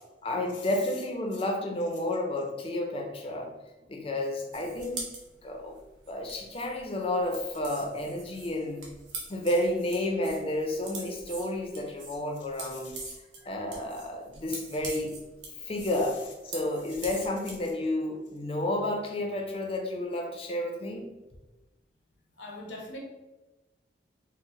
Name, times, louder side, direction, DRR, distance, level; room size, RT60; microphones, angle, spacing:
voice 1, 0.2-3.5 3.9-5.0 5.4-5.7 6.1-8.9 9.3-13.0 13.5-15.1 15.6-21.1, left 1 dB, 30° left, 2 dB, 0.5 m, -31 dB
sound 1, 4.5-17.7, right 3 dB, 75° right, 0.9 m, -44 dB
voice 2, 12.7-13.1 13.4-13.5 22.4-23.0, left 1 dB, 75° left, 0 dB, 0.8 m, -43 dB
4.5 x 2.0 x 3.1 m, 1.1 s
head